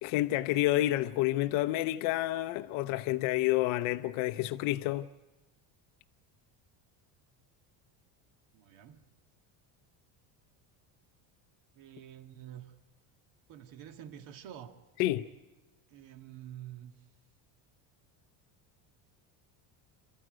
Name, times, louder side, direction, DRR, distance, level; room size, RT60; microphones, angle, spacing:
voice 1, 0.0-5.1 15.0-15.3, left 16 dB, 75° left, 0.8 m, -29 dB
voice 2, 8.5-9.1 11.7-12.7 13.5-14.8 15.9-16.9, right 10 dB, 70° right, 2.0 m, -48 dB
28.5 x 13.5 x 9.2 m
cardioid pair, 125°, 49 cm